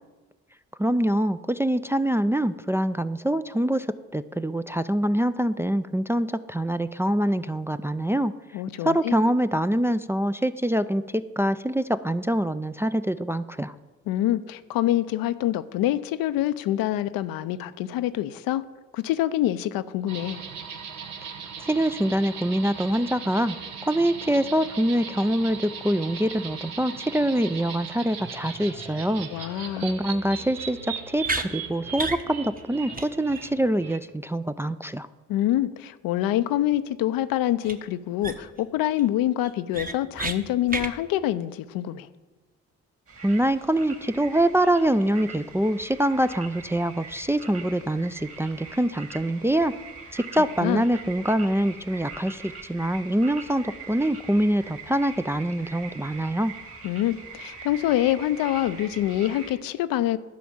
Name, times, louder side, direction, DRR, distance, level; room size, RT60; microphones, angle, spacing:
voice 1, 0.8-8.3 8.8-13.7 21.6-23.6 23.8-29.3 29.8-35.1 43.2-49.7 50.1-56.5, right 1 dB, 5° right, 0.4 m, -25 dB
voice 2, 8.5-9.1 14.1-18.6 18.9-20.4 29.3-29.9 35.3-42.1 50.6-50.8 56.8-60.2, left 13 dB, 70° left, 0.6 m, -26 dB
sound 1, 20.1-34.0, right 6 dB, 80° right, 1.2 m, -38 dB
sound 2, 31.2-31.5 32.0-32.2 32.6-32.7 32.9-33.1 33.3-33.5 37.6-37.7 38.2-38.6 39.0-39.1 39.4-40.4 40.7-40.9, right 3 dB, 25° right, 1.1 m, -30 dB
sound 3, 43.1-59.5, right 5 dB, 40° right, 2.5 m, -43 dB
11.5 x 5.0 x 7.2 m
hypercardioid pair, 45°, 35 cm